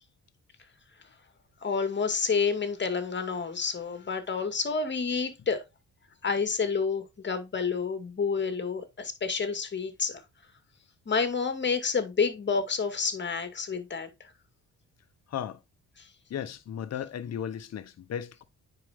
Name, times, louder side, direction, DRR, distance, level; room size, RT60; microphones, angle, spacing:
voice 1, 1.6-5.6 6.2-10.2 11.1-14.3 16.0-16.1, left 5 dB, 35° left, 2.3 m, -29 dB
voice 2, 16.3-18.4, left 9 dB, 60° left, 1.2 m, -35 dB
9.6 x 5.3 x 3.6 m
cardioid pair, 90°, 30 cm